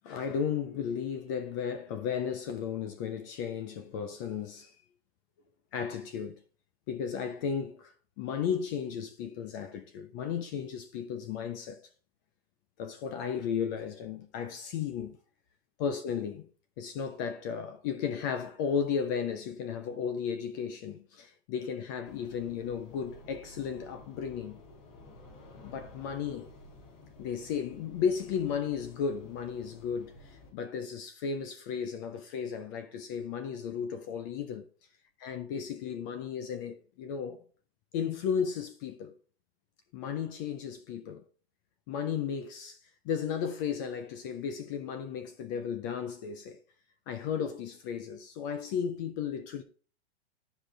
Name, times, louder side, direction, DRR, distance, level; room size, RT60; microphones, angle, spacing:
voice 1, 0.0-4.8 5.7-6.4 6.9-11.8 12.8-15.2 15.8-16.5 16.8-24.6 25.6-26.5 27.2-34.7 35.2-37.4 37.9-39.1 39.9-41.2 41.9-42.8 43.0-46.6 47.1-49.6, left 7 dB, 20° left, 0.3 m, -34 dB
sound 1, 22.0-30.5, left 1 dB, 50° left, 3.4 m, -52 dB
12.0 x 5.0 x 3.7 m
supercardioid pair, 160°, 31 cm